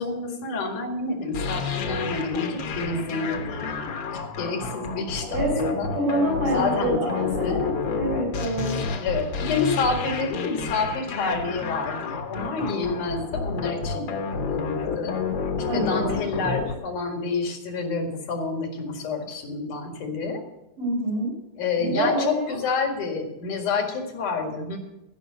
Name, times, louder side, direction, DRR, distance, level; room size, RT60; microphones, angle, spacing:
voice 1, 0.0-5.9 6.4-7.7 9.0-15.2 15.7-20.4 21.6-24.8, left 4 dB, 85° left, 3 dB, 3.5 m, -29 dB
sound 1, 1.3-16.8, left 5 dB, 60° left, 1.3 m, -30 dB
voice 2, 5.3-7.7 7.9-8.8 15.7-16.3 20.8-21.3 21.8-22.6, right 1 dB, 90° right, -9 dB, 6.8 m, -26 dB
14.5 x 6.0 x 8.2 m, 0.92 s
omnidirectional pair, 3.5 m